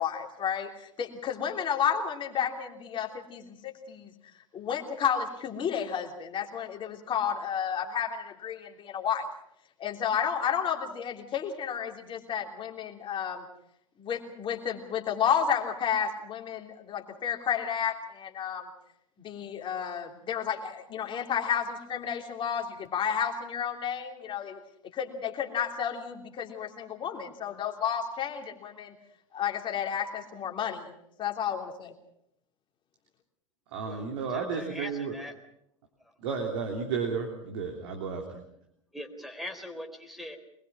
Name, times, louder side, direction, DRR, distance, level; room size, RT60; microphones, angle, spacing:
voice 1, 0.0-4.1 4.5-9.2 9.8-13.4 14.0-18.7 19.2-24.6 24.9-28.9 29.3-30.9 31.2-31.9, left 8 dB, 30° left, 2 dB, 3.2 m, -31 dB
voice 2, 33.7-35.2 36.2-38.4, right 5 dB, 60° right, 3 dB, 3.3 m, -32 dB
voice 3, 34.3-35.3 38.9-40.4, left 1 dB, ahead, 6 dB, 3.7 m, -41 dB
24.5 x 21.0 x 6.2 m, 0.74 s
figure-of-eight pair, 85°, 17 cm